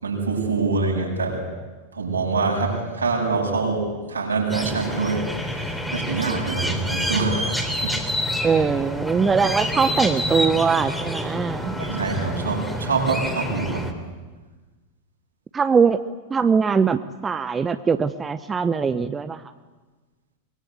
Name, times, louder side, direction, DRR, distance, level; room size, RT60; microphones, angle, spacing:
voice 1, 0.0-1.4 1.9-8.0 11.8-13.9, right 4 dB, 75° right, 0 dB, 7.8 m, -25 dB
sound 1, 4.5-13.9, equal, ahead, 3.4 m, -28 dB
voice 2, 8.4-11.7 15.5-16.0 16.3-19.4, right 5 dB, 15° right, 11 dB, 0.9 m, -21 dB
24.0 x 23.0 x 8.4 m, 1.3 s
figure-of-eight pair, 90°, 0 cm